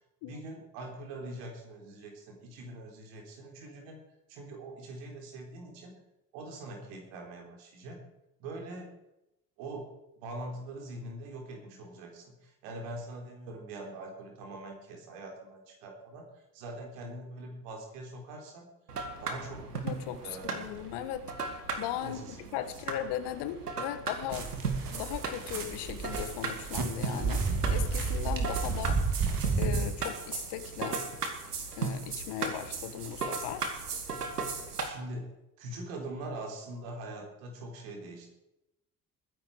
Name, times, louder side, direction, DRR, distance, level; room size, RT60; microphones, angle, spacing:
voice 1, 0.2-4.0 4.3-6.0 6.3-8.0 8.4-8.9 9.6-18.7 19.2-19.7 20.2-20.7 22.0-22.4 34.8-38.3, right 2 dB, 70° right, 1 dB, 3.8 m, -43 dB
sound 1, 18.9-34.9, right 4 dB, 90° right, 1.6 m, -37 dB
voice 2, 19.8-24.5 24.9-29.0 29.6-31.0 31.8-33.7, left 11 dB, 60° left, 11 dB, 1.5 m, -38 dB
sound 2, 24.3-29.8, right 4 dB, 45° right, 3.2 m, -31 dB
21.0 x 10.0 x 4.9 m, 0.91 s
figure-of-eight pair, 50°, 45 cm